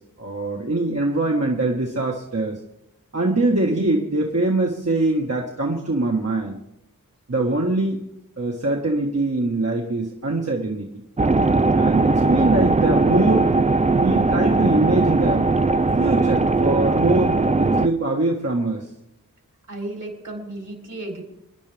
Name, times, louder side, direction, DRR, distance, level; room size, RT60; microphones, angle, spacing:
voice 1, 0.2-2.6 3.1-6.6 7.3-8.0 8.4-10.9 11.7-13.5 13.9-15.5 16.0-18.9, right 2 dB, 45° right, -1 dB, 1.8 m, -23 dB
sound 1, 11.2-17.9, right 3 dB, 20° right, 0.5 m, -19 dB
voice 2, 19.7-21.2, right 1 dB, 60° right, 1 dB, 3.8 m, -33 dB
27.5 x 10.5 x 3.5 m, 0.84 s
wide cardioid pair, 65°, 35 cm